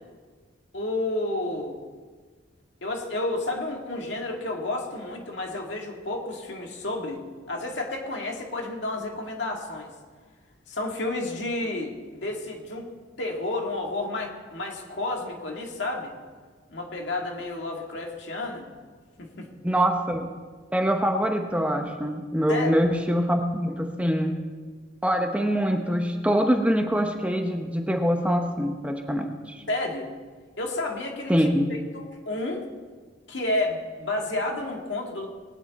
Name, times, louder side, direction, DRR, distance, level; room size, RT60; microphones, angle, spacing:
voice 1, 0.7-1.8 2.8-9.9 10.7-12.9 13.2-16.1 16.7-18.7 19.2-19.5 22.5-22.7 29.7-30.1 30.6-32.6 33.3-35.3, left 2 dB, 65° left, 1 dB, 2.1 m, -31 dB
voice 2, 19.6-20.3 20.7-24.4 25.0-29.6 31.3-31.7, equal, 5° right, 3 dB, 0.8 m, -24 dB
20.0 x 9.7 x 4.2 m, 1.5 s
head